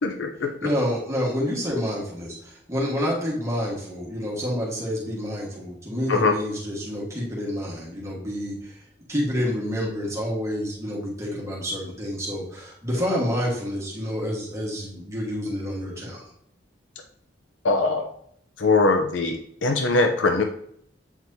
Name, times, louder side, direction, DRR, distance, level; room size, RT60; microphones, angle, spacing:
voice 1, 0.0-0.5 6.1-6.3 17.6-18.1 18.6-20.4, left 3 dB, 85° left, 4 dB, 0.7 m, -21 dB
voice 2, 0.6-8.8 9.1-16.2, equal, 15° right, -5 dB, 1.5 m, -28 dB
8.0 x 4.5 x 2.8 m, 0.69 s
head